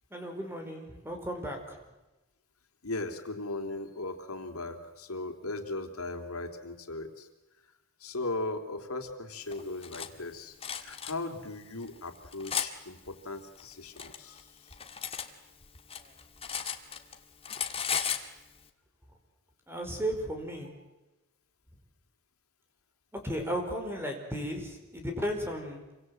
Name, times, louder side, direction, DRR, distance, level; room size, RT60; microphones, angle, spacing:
voice 1, 0.1-1.8 16.0-16.1 19.7-20.7 23.1-25.8, equal, 10° right, 4 dB, 5.0 m, -35 dB
voice 2, 2.8-7.3 8.0-14.5, left 2 dB, 90° left, 5 dB, 3.2 m, -38 dB
Cutlery silverware, 9.5-10.1 10.6-11.1 11.8-12.7 13.6-15.3 15.6-17.2 17.4-18.3, left 7 dB, 25° left, 1.9 m, -35 dB
27.5 x 25.0 x 7.8 m, 1.1 s
head